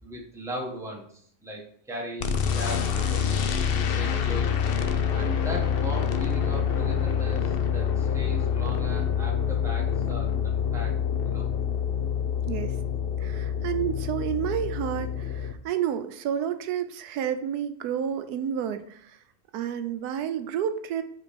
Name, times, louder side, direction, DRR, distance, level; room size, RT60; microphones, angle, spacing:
voice 1, 0.0-3.5 3.7-4.5 5.1-11.5, right 1 dB, ahead, -1 dB, 1.1 m, -38 dB
sound 1, 2.2-15.5, left 7 dB, 65° left, 0.5 m, -26 dB
voice 2, 13.2-19.2 19.5-21.0, right 9 dB, 85° right, 10 dB, 1.1 m, -30 dB
5.0 x 4.4 x 5.0 m, 0.63 s
omnidirectional pair, 1.6 m